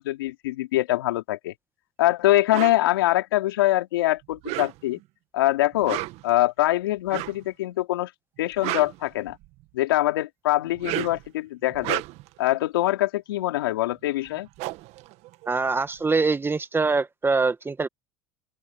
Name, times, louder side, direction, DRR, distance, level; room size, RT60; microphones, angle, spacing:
voice 1, 0.0-1.5 2.0-5.0 5.3-8.1 8.4-9.4 9.7-12.0 12.4-14.5, left 16 dB, 85° left, 3.4 m, -24 dB
sound 1, 2.5-2.8 4.3-5.0 5.7-6.3 7.1-7.4 8.4-9.6 10.6-11.3 11.7-12.4 13.9-14.0 14.3-15.9, right 20 dB, 65° right, 1.6 m, -32 dB
voice 2, 15.5-17.9, right 4 dB, 20° right, 1.6 m, -24 dB
open air
hypercardioid pair, 80°, 12 cm